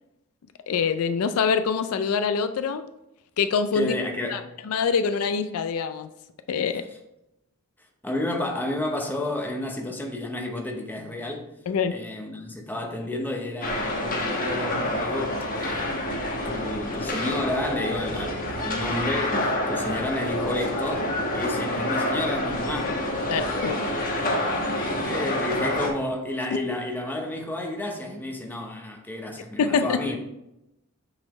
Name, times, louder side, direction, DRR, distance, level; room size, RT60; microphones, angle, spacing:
voice 1, 0.7-2.8 3.4-3.9 4.3-4.4 4.7-6.1 6.5-6.8 11.7-11.9 23.3-23.8 29.6-30.0, left 6 dB, 75° left, 0.4 m, -24 dB
voice 2, 3.7-4.4 8.0-11.5 11.9-16.1 16.4-23.0 25.0-30.2, left 1 dB, 10° left, 0.8 m, -31 dB
sound 1, 13.6-25.9, left 1 dB, 40° left, 1.0 m, -27 dB
7.5 x 4.1 x 3.1 m
head